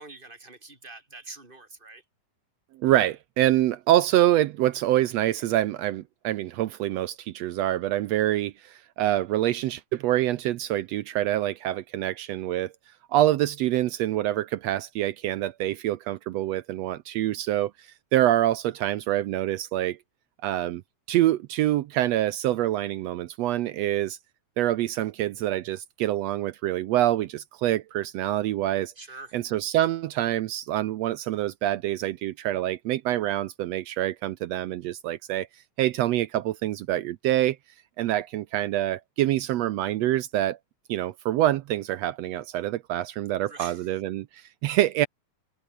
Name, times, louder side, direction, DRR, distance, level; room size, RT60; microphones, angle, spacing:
voice 1, 0.0-2.0 29.0-29.4 43.4-43.8, right 3 dB, 15° right, 5.4 m, -44 dB
voice 2, 2.7-12.7 13.1-20.0 20.4-20.8 21.1-24.2 24.6-28.9 29.3-35.5 35.8-37.6 38.0-40.6 40.9-45.1, right 13 dB, 75° right, 1.7 m, -26 dB
omnidirectional pair, 3.4 m